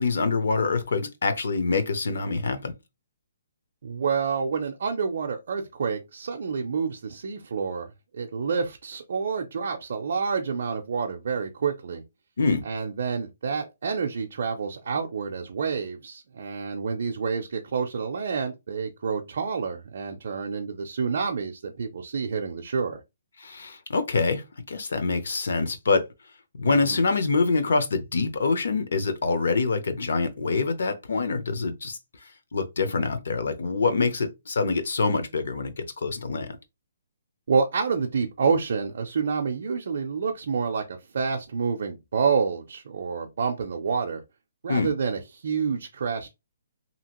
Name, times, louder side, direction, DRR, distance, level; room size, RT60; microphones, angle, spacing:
voice 1, 0.0-2.7 12.4-12.6 23.4-26.0 26.6-32.0 32.5-36.6 44.7-44.9, left 4 dB, 65° left, 0.6 m, -25 dB
voice 2, 3.8-7.9 8.1-12.0 12.6-23.0 26.6-27.1 37.5-44.2 44.6-46.3, right 5 dB, 50° right, 0.4 m, -28 dB
2.8 x 2.4 x 2.9 m
hypercardioid pair, 180°, 0 cm